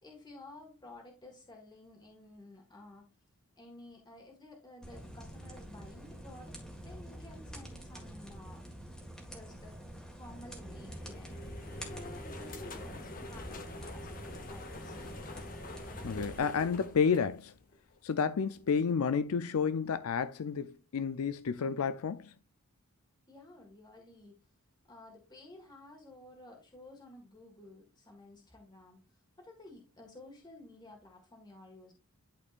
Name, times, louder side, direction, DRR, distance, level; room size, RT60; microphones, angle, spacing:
voice 1, 0.0-3.1 3.6-8.6 9.2-11.4 11.9-15.0 23.3-24.4 24.9-29.0 29.4-31.9, left 2 dB, 20° left, 1.7 m, -53 dB
sound 1, 4.8-16.4, equal, 5° left, 1.7 m, -47 dB
sound 2, 10.6-17.9, left 2 dB, 40° left, 0.9 m, -46 dB
voice 2, 16.0-17.5 18.0-22.3, left 6 dB, 80° left, 0.4 m, -30 dB
11.5 x 4.3 x 2.5 m
head